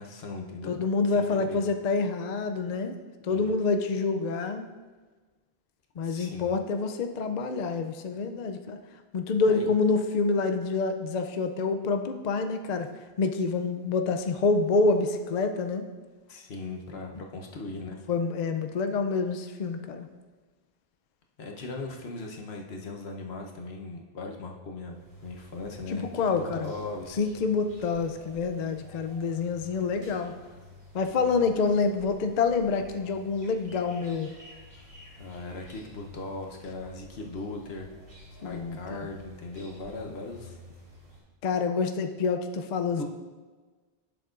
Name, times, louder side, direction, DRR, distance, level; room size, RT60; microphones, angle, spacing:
voice 1, 0.0-0.8 1.1-1.7 3.3-3.4 6.0-6.5 9.5-9.7 16.3-18.0 21.4-27.4 30.2-30.3 35.2-37.9 38.4-40.6 43.0-43.1, left 3 dB, 80° left, 2 dB, 1.1 m, -39 dB
voice 2, 0.7-3.0 3.2-4.6 6.0-8.8 9.1-12.9 13.2-15.8 18.1-20.1 25.9-26.7 27.2-30.3 30.9-34.3 38.4-38.8 41.4-43.0, left 4 dB, 55° left, 6 dB, 0.5 m, -27 dB
sound 1, 24.8-41.2, left 2 dB, 45° right, 2.7 m, -51 dB
11.0 x 7.0 x 2.5 m, 1.3 s
omnidirectional pair, 1.0 m